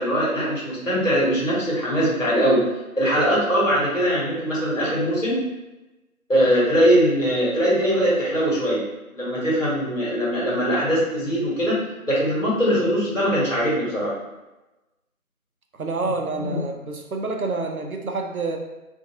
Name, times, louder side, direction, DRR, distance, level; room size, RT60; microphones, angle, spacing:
voice 1, 0.0-2.6 2.9-5.4 6.3-8.8 9.1-11.8 12.1-14.1 16.3-16.6, equal, 60° left, -7 dB, 1.3 m, -21 dB
voice 2, 15.7-18.6, right 3 dB, 75° right, 2 dB, 0.6 m, -28 dB
2.5 x 2.5 x 2.8 m, 1.0 s
figure-of-eight pair, 170°, 43 cm